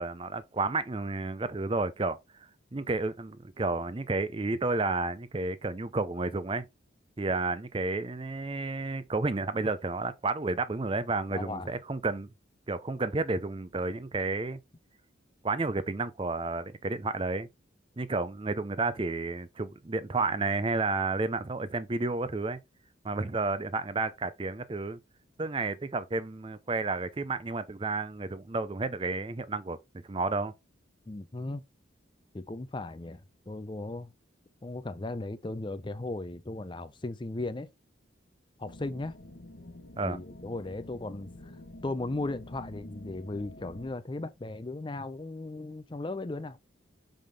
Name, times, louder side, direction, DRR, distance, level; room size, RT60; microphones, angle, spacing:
voice 1, 0.0-2.2 2.7-6.7 7.2-12.3 12.7-14.6 15.4-17.5 18.0-22.6 23.0-25.0 25.4-29.8 30.1-30.5 40.0-40.2, right 3 dB, 25° right, 0.5 m, -31 dB
voice 2, 11.3-11.7 31.1-31.6 32.3-34.1 34.6-37.7 38.6-39.1 40.0-46.6, left 2 dB, 25° left, 0.5 m, -37 dB
sound 1, 38.6-43.9, left 1 dB, 60° left, 1.0 m, -48 dB
5.7 x 5.1 x 3.4 m
head